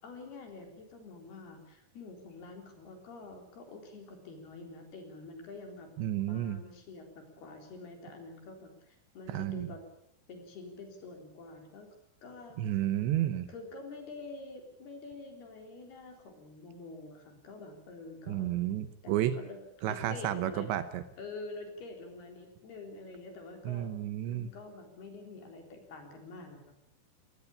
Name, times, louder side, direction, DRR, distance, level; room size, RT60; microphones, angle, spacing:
voice 1, 0.0-5.9 6.2-9.8 10.3-11.9 12.2-12.6 13.5-18.5 19.0-20.7 21.2-24.0 24.3-26.8, left 3 dB, 55° left, 4 dB, 5.6 m, -47 dB
voice 2, 6.0-6.6 9.3-9.7 12.6-13.5 18.3-19.4 19.8-21.0 23.7-24.5, right 12 dB, 75° right, 12 dB, 3.1 m, -31 dB
20.5 x 19.5 x 8.7 m, 0.73 s
omnidirectional pair, 5.5 m